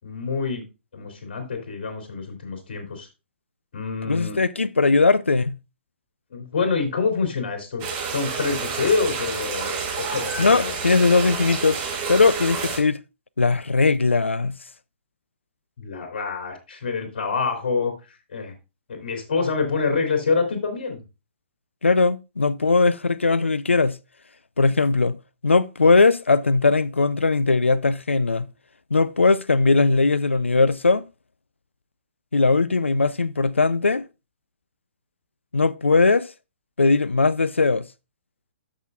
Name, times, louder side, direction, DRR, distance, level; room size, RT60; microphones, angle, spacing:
voice 1, 0.0-0.6 0.9-3.1 3.7-4.4 6.3-9.7 10.0-10.7 15.8-17.9 18.3-18.5 18.9-21.0, left 4 dB, 50° left, 3.2 m, -26 dB
voice 2, 4.1-5.5 10.4-11.8 12.1-13.0 13.4-14.5 21.8-24.0 24.6-25.2 25.4-28.5 28.9-31.1 32.3-34.0 35.5-36.3 36.8-37.8, left 3 dB, 80° left, 0.4 m, -19 dB
sound 1, 7.8-12.8, right 5 dB, 30° right, 2.7 m, -29 dB
13.0 x 6.2 x 2.4 m
figure-of-eight pair, 120°, 6 cm